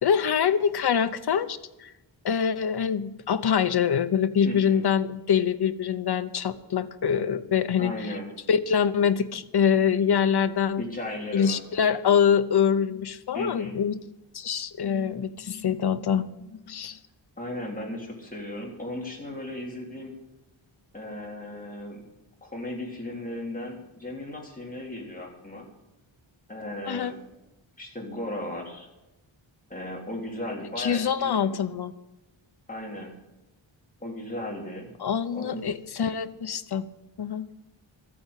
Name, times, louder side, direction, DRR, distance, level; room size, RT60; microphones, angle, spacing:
voice 1, 0.0-1.9 2.2-8.1 8.5-10.8 11.3-14.0 14.3-16.3 16.7-17.0 26.9-27.1 30.8-31.9 35.0-36.9 37.2-37.5, left 7 dB, 55° left, 11 dB, 0.8 m, -24 dB
voice 2, 4.4-4.8 7.8-8.3 10.8-11.6 13.3-13.8 17.4-20.1 20.9-22.0 22.4-25.7 26.5-27.1 27.8-28.9 29.7-31.6 32.7-33.1 34.0-34.9 35.3-35.7, left 1 dB, 15° left, -2 dB, 3.5 m, -36 dB
13.5 x 8.7 x 8.2 m, 0.99 s
wide cardioid pair, 150°, 48 cm